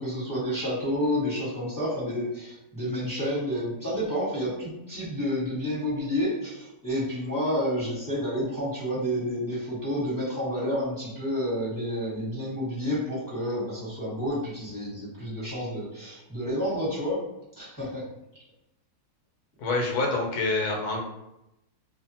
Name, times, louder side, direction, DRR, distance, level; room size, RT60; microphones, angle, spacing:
voice 1, 0.0-17.2 17.6-18.1, equal, 15° right, -10 dB, 1.0 m, -30 dB
voice 2, 19.6-21.0, left 3 dB, 75° left, 0 dB, 1.2 m, -26 dB
2.6 x 2.4 x 2.7 m, 0.88 s
omnidirectional pair, 1.7 m